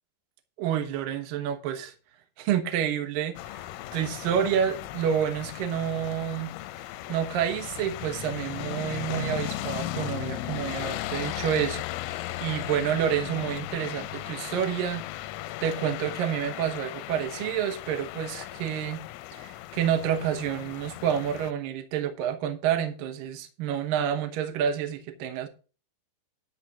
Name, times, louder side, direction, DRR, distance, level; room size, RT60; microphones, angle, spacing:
voice 1, 0.6-1.9 2.4-6.5 7.1-15.0 15.6-19.0 19.3-25.5, right 9 dB, 85° right, 1.9 m, -29 dB
sound 1, 3.4-21.5, left 15 dB, 85° left, 3.3 m, -36 dB
12.5 x 4.2 x 7.6 m
omnidirectional pair, 5.8 m